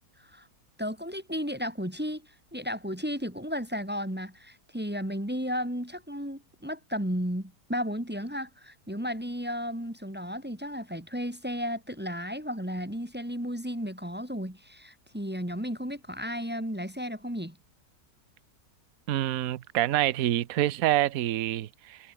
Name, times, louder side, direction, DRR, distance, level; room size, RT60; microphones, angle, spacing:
voice 1, 0.8-17.6, equal, 5° right, 1.5 m, -34 dB
voice 2, 19.1-22.0, right 13 dB, 65° right, 1.2 m, -26 dB
omnidirectional pair, 1.8 m